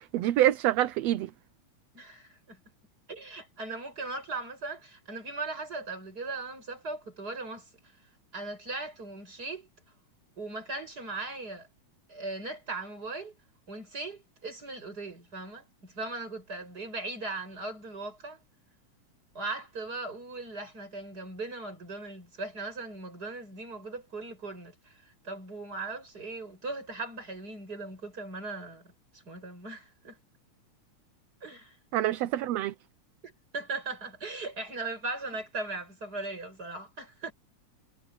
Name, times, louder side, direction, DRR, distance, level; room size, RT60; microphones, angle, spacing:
voice 1, 0.1-1.3 31.9-32.7, right 13 dB, 70° right, 1.7 m, -26 dB
voice 2, 1.9-2.6 3.1-7.7 8.3-9.7 10.4-11.7 12.1-13.3 13.7-18.4 19.3-30.2 31.4-31.8 33.2-37.3, right 3 dB, 30° right, 8.4 m, -38 dB
omnidirectional pair, 3.3 m